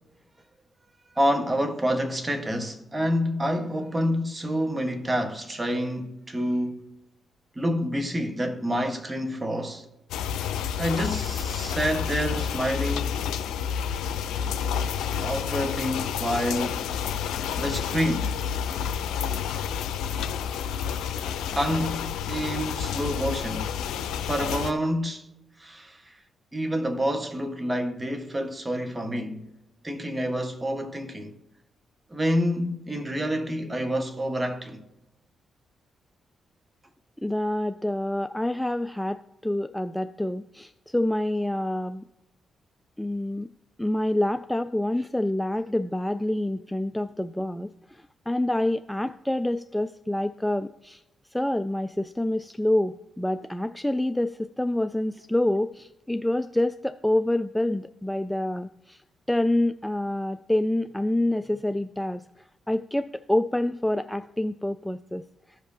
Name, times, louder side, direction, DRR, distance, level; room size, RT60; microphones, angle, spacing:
voice 1, 1.2-6.8 7.5-9.8 10.8-13.1 15.2-16.9 17.6-18.4 21.2-21.3 21.5-23.7 24.2-25.3 25.6-26.2 26.5-29.4 29.8-31.4 32.1-34.8, equal, 25° right, 1.3 m, -28 dB
sound 1, 10.1-24.7, left 8 dB, 80° left, 0.6 m, -29 dB
voice 2, 37.2-42.0 43.0-43.5 43.8-51.0 51.3-59.0 59.3-62.2 62.7-65.2, left 1 dB, 5° left, 0.3 m, -27 dB
15.0 x 5.1 x 2.7 m
supercardioid pair, 50°, 0 cm